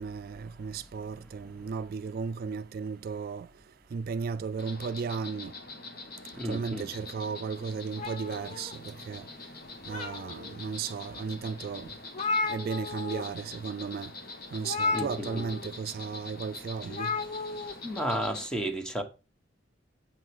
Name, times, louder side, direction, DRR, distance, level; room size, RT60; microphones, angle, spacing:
voice 1, 0.0-3.5 3.9-5.5 6.4-9.3 9.9-11.9 12.5-14.1 14.5-17.1, right 5 dB, 50° right, 0.3 m, -35 dB
Insect, 4.6-18.5, left 3 dB, 55° left, 1.3 m, -45 dB
voice 2, 6.4-6.9 14.9-15.4 17.8-19.0, equal, 5° left, 1.1 m, -32 dB
sound 1, 8.0-9.2 9.6-10.5 11.1-11.2 11.6-11.7 11.9-13.3 13.5-13.7 14.6-15.7 16.9-17.7, left 3 dB, 40° left, 1.1 m, -33 dB
7.9 x 5.6 x 4.7 m
head